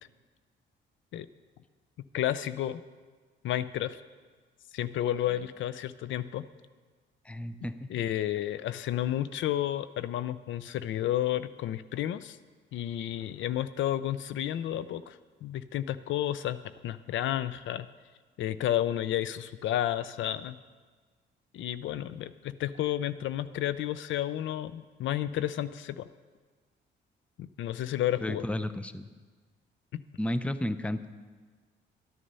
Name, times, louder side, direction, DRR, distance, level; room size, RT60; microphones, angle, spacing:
voice 1, 2.1-2.8 3.4-4.0 4.7-6.4 7.9-12.4 12.7-17.9 18.4-20.6 21.5-26.1 27.4-28.4 29.9-30.0, left 12 dB, 75° left, 14 dB, 0.5 m, -31 dB
voice 2, 7.2-7.9 28.2-29.1 30.2-31.1, left 1 dB, 5° left, 12 dB, 0.5 m, -32 dB
12.5 x 10.0 x 5.5 m, 1.4 s
cardioid pair, 90°, 20 cm